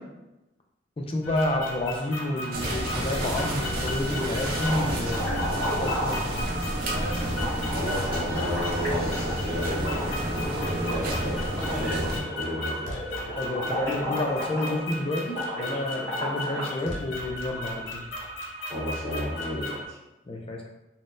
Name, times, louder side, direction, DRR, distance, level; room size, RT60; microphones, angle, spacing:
voice 1, 1.0-6.5 13.4-18.0 20.3-20.7, left 1 dB, 30° left, 1 dB, 0.4 m, -30 dB
sound 1, 1.2-19.8, left 1 dB, 90° left, 0.5 m, -36 dB
sound 2, 2.5-12.2, right 1 dB, 50° right, 0.5 m, -30 dB
sound 3, 3.1-3.7 4.1-16.8, equal, 15° left, 1.4 m, -35 dB
voice 2, 7.6-12.9 18.7-20.0, left 1 dB, 20° right, -10 dB, 1.2 m, -32 dB
3.8 x 2.0 x 2.5 m, 0.97 s
head